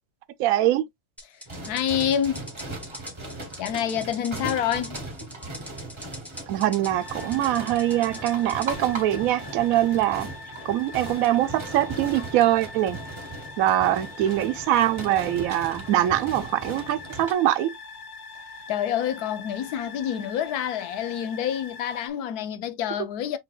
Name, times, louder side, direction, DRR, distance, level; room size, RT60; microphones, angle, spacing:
voice 1, 0.4-0.8 6.5-10.3 10.6-13.0 13.6-17.7, right 13 dB, 75° right, 1.0 m, -23 dB
sound 1, 1.2-8.7, equal, ahead, 1.3 m, -42 dB
sound 2, 1.5-17.3, right 2 dB, 20° right, 0.9 m, -38 dB
voice 2, 1.7-2.4 3.6-5.0 18.7-23.4, left 9 dB, 85° left, 1.2 m, -27 dB
sound 3, 6.9-22.1, left 3 dB, 65° left, 1.4 m, -43 dB
6.0 x 3.4 x 2.4 m
omnidirectional pair, 1.6 m